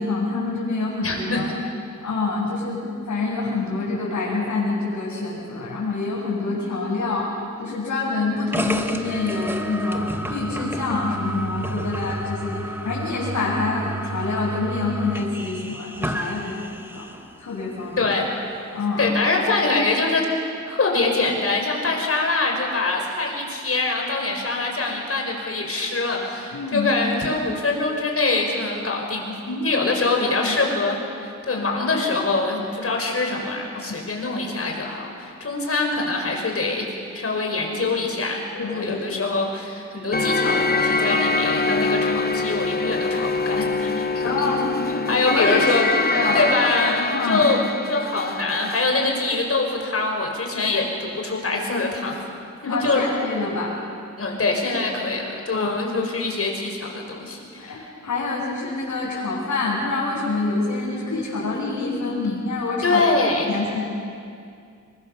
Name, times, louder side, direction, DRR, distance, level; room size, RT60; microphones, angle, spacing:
voice 1, 0.0-1.5 2.0-2.8 3.1-7.3 7.6-17.1 17.4-18.1 18.7-19.1 26.5-26.9 29.8-29.9 30.4-30.6 38.5-39.2 44.2-44.7 45.2-45.7 45.9-46.5 47.0-47.5 52.7-53.8 55.5-55.8 57.6-63.1 63.5-63.8, left 3 dB, 75° left, -7 dB, 7.2 m, -26 dB
voice 2, 1.0-1.5 18.0-18.2 19.0-20.3 20.7-36.9 37.1-45.9 46.3-47.6 47.9-52.1 52.6-53.2 54.2-57.9 62.8-63.5, left 3 dB, 50° left, 1 dB, 5.6 m, -24 dB
sound 1, 8.5-17.3, right 2 dB, 5° right, 1.8 m, -31 dB
sound 2, 40.1-48.9, left 3 dB, 30° left, 1.4 m, -24 dB
27.5 x 23.0 x 7.2 m, 2.4 s
cardioid pair, 85°, 30 cm